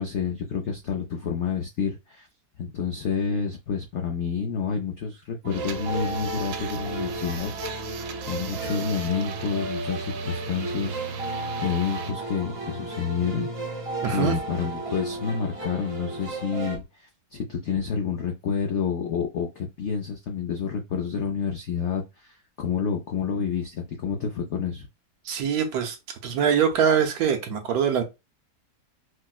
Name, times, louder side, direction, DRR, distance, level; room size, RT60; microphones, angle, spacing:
voice 1, 0.0-2.3 2.6-11.4 11.6-24.9, left 6 dB, 90° left, 0.6 m, -29 dB
sound 1, 5.4-16.8, right 2 dB, 45° right, 0.4 m, -34 dB
sound 2, 5.5-12.1, right 6 dB, 90° right, 1.3 m, -37 dB
voice 2, 14.0-14.4 25.2-26.0 26.2-28.0, right 7 dB, 70° right, 1.0 m, -23 dB
4.3 x 2.0 x 2.3 m
omnidirectional pair, 1.9 m